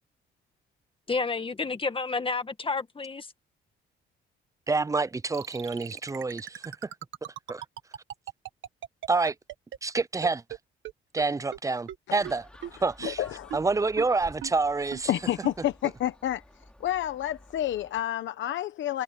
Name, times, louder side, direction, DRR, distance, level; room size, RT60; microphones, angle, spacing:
voice 1, 1.1-3.3, left 4 dB, 25° left, 1.9 m, -30 dB
voice 2, 4.7-6.9 7.5-7.6 9.1-9.3 9.8-10.4 11.1-12.5 12.8-13.2 13.5-15.1, right 3 dB, 15° right, 0.5 m, -27 dB
sound 1, 5.3-10.6 10.8-10.9 11.2-11.3 11.5-11.6 11.9-12.0 12.2-12.3 12.6-12.7 13.0-13.1 13.5-13.6 14.0-14.1 14.4-14.5 14.9-15.0 15.4-15.5, right 11 dB, 75° right, 1.9 m, -37 dB
Gull seagull, 12.2-18.0, left 1 dB, 5° left, 4.9 m, -52 dB
voice 3, 13.0-13.5 15.1-16.4 16.8-19.0, left 12 dB, 70° left, 1.0 m, -29 dB
cardioid pair, 90°, 20 cm